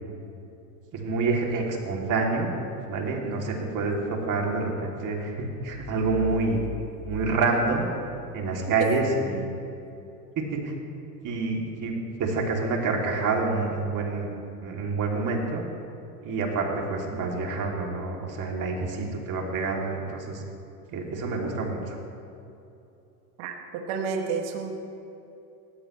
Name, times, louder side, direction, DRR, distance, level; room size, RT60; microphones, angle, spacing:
voice 1, 0.9-2.5 2.9-6.6 7.0-7.8 8.3-9.5 10.4-10.7 11.2-14.3 14.6-15.6 16.2-20.4 20.9-22.0, right 3 dB, 40° right, -1 dB, 3.0 m, -27 dB
sound 1, 5.7-8.3, left 2 dB, 85° right, 3.8 m, -39 dB
voice 2, 23.4-24.7, right 6 dB, 60° right, 2 dB, 2.3 m, -30 dB
18.5 x 14.5 x 3.3 m, 2.8 s
hypercardioid pair, 100°, 49 cm